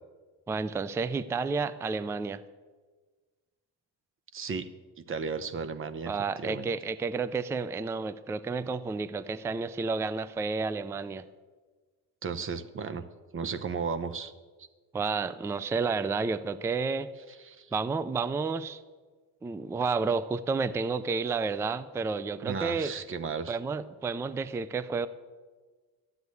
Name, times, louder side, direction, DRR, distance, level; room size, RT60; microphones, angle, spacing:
voice 1, 0.5-2.4 6.1-11.2 14.9-17.1 17.7-18.8 19.4-22.9 23.5-25.1, right 4 dB, 5° right, 16 dB, 0.3 m, -31 dB
voice 2, 4.3-4.7 5.0-6.7 12.2-13.0 13.3-14.3 14.6-14.7 17.4-17.7 22.4-23.6, right 5 dB, 30° right, 14 dB, 0.9 m, -35 dB
12.5 x 8.0 x 9.6 m, 1.4 s
cardioid pair, 120°, 41 cm